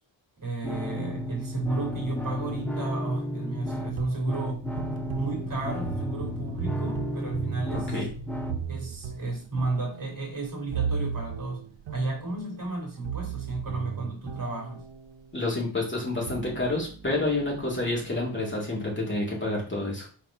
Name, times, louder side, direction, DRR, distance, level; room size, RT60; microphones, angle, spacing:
voice 1, 0.4-4.7 5.1-8.0 8.7-14.9, right 3 dB, 45° right, 1 dB, 2.3 m, -33 dB
sound 1, 0.6-8.6, left 1 dB, 5° left, 0.5 m, -33 dB
sound 2, 3.9-15.3 16.0-18.4, right 6 dB, 75° right, 0.8 m, -36 dB
voice 2, 15.3-20.1, left 2 dB, 25° left, -3 dB, 2.0 m, -29 dB
4.6 x 3.9 x 5.5 m, 0.38 s
wide cardioid pair, 160°, 46 cm